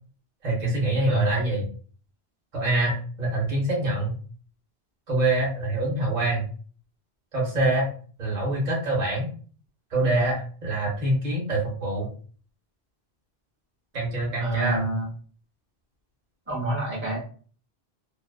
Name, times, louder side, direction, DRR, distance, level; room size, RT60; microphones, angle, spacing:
voice 1, 0.4-1.7 2.5-4.1 5.1-6.5 7.3-7.9 8.2-9.3 9.9-12.1 13.9-14.8, right 2 dB, 50° right, -3 dB, 0.9 m, -25 dB
voice 2, 14.4-15.1 16.5-17.2, right 1 dB, 10° right, -5 dB, 1.0 m, -28 dB
2.5 x 2.2 x 2.2 m, 0.42 s
omnidirectional pair, 1.0 m